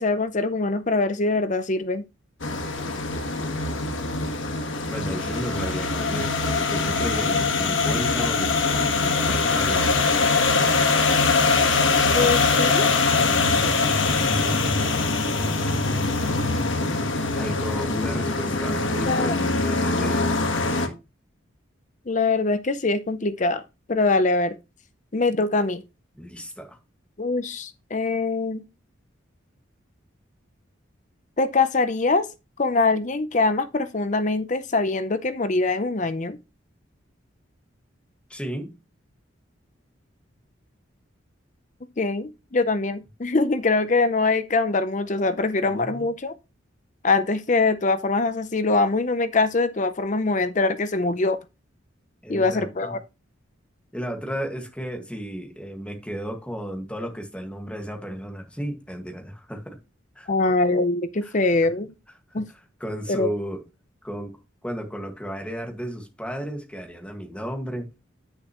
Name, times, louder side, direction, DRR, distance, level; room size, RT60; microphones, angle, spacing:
voice 1, 0.0-2.0 12.1-13.3 19.0-19.4 22.1-23.6 23.9-24.5 25.1-25.8 27.2-28.6 31.4-32.3 32.6-36.4 42.0-46.3 47.0-51.4 52.3-53.0 60.3-61.9 62.3-62.5 63.1-63.3, left 3 dB, 40° left, 0.6 m, -23 dB
sound 1, 2.4-20.9, left 3 dB, 70° left, 1.5 m, -23 dB
voice 2, 4.9-10.0 17.3-20.8 26.2-26.8 38.3-38.7 45.6-46.1 52.2-52.9 53.9-59.8 60.2-60.3 61.2-61.3 62.3-62.4 62.8-63.6 64.0-64.4 64.6-67.9, equal, 5° left, 1.8 m, -34 dB
10.0 x 6.6 x 3.0 m
head